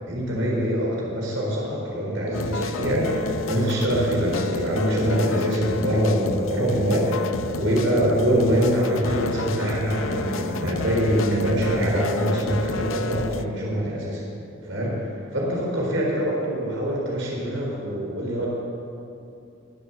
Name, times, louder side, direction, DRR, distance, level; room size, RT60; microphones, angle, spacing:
voice 1, 0.1-14.2 14.6-15.0 15.3-18.5, equal, 65° right, -3 dB, 4.3 m, -24 dB
sound 1, 2.3-13.5, left 4 dB, 85° left, 0.6 m, -31 dB
22.5 x 8.2 x 7.6 m, 2.6 s
head